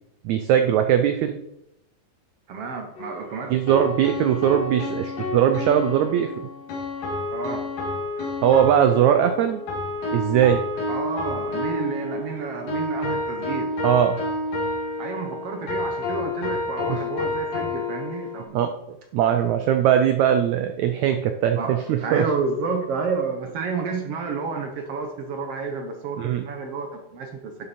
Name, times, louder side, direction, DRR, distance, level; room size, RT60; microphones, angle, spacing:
voice 1, 0.3-1.4 3.5-6.3 8.4-9.6 10.1-10.6 13.8-14.2 16.9-17.0 18.5-22.3 26.2-26.4, right 9 dB, 90° right, 7 dB, 1.6 m, -20 dB
voice 2, 2.5-3.6 7.3-7.6 10.9-13.7 15.0-18.6 21.6-27.7, right 4 dB, 70° right, 4 dB, 1.5 m, -30 dB
sound 1, 3.0-18.4, left 2 dB, 75° left, 3.8 m, -30 dB
10.5 x 7.0 x 4.3 m, 0.83 s
omnidirectional pair, 4.0 m